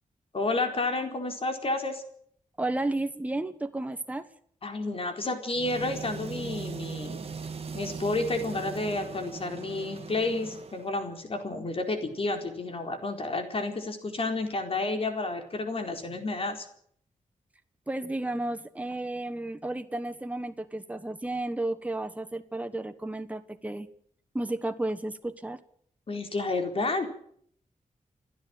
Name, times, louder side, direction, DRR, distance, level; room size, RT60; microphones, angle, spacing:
voice 1, 0.3-2.0 4.6-7.2 7.7-16.7 26.1-27.1, left 2 dB, 45° left, 5 dB, 4.4 m, -30 dB
voice 2, 2.6-4.3 17.9-23.9 24.3-25.6, right 2 dB, 10° right, 8 dB, 1.3 m, -32 dB
sound 1, 5.5-10.9, right 5 dB, 50° right, 2.1 m, -39 dB
29.5 x 10.5 x 9.0 m, 0.64 s
wide cardioid pair, 125°, 13 cm